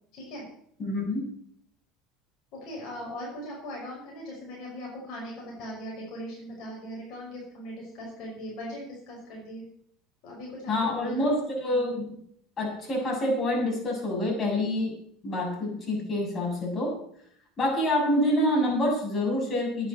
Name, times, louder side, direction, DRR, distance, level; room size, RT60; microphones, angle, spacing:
voice 1, 0.1-0.4 2.5-9.6 10.2-11.3, equal, 60° left, -2 dB, 5.7 m, -39 dB
voice 2, 0.8-1.3 10.7-12.2 12.6-15.0 15.2-17.0 17.6-19.9, left 1 dB, 35° left, -1 dB, 7.4 m, -27 dB
10.0 x 9.7 x 8.0 m, 0.65 s
hypercardioid pair, 80°, 0 cm